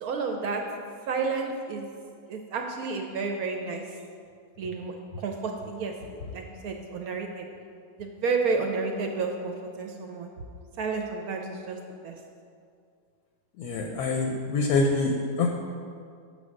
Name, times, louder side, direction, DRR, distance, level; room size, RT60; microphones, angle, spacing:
voice 1, 0.0-0.6 1.1-1.9 2.3-3.8 4.6-5.9 6.3-7.4 8.0-10.3 10.8-11.8 12.0-12.2, right 4 dB, 70° right, 3 dB, 0.9 m, -31 dB
voice 2, 13.6-15.5, left 3 dB, 70° left, 2 dB, 1.0 m, -25 dB
6.9 x 3.4 x 6.2 m, 2.3 s
omnidirectional pair, 1.9 m